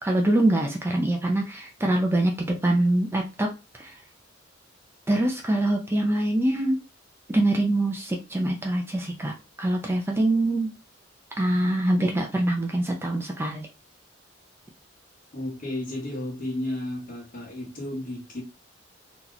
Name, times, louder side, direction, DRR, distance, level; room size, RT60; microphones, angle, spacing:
voice 1, 0.0-3.5 3.8-3.9 5.1-6.8 7.3-10.7 11.4-13.7, right 1 dB, 10° right, 0.5 m, -24 dB
voice 2, 15.3-18.4, left 1 dB, 45° left, 1.3 m, -33 dB
2.9 x 2.4 x 3.9 m
head